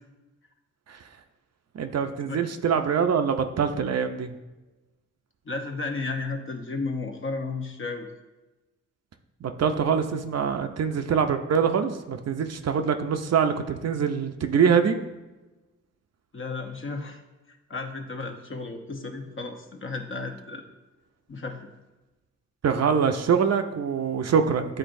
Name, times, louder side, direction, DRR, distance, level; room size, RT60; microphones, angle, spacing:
voice 1, 1.7-4.3 9.4-15.0 22.6-24.8, right 6 dB, 60° right, 7 dB, 0.6 m, -24 dB
voice 2, 5.4-8.1 16.3-17.2 17.5-20.7 21.3-21.7, left 3 dB, 45° left, 4 dB, 0.9 m, -33 dB
10.0 x 3.9 x 2.6 m, 1.1 s
cardioid pair, 70°, 30 cm